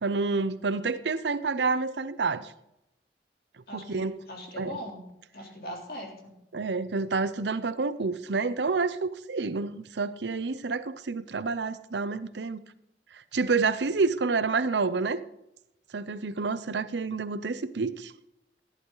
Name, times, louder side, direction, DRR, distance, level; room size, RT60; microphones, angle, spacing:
voice 1, 0.0-2.5 3.7-4.2 4.5-4.8 6.5-12.6 13.1-15.2 15.9-18.1, right 4 dB, 85° right, 0.7 m, -28 dB
voice 2, 3.7-5.0 5.3-6.1, left 1 dB, 60° left, 3.5 m, -40 dB
14.5 x 11.5 x 4.0 m
head